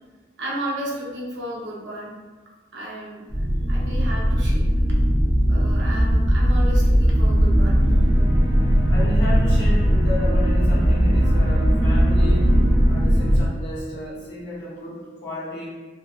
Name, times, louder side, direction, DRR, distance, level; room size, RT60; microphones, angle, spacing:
voice 1, 0.4-2.1 2.7-4.6 5.5-7.8, right 1 dB, 75° right, -4 dB, 0.7 m, -33 dB
sound 1, 3.3-13.4, equal, 35° right, 0.6 m, -18 dB
voice 2, 8.9-12.5 12.9-15.7, left 1 dB, 65° left, -7 dB, 1.0 m, -32 dB
2.7 x 2.7 x 2.4 m, 1.3 s
head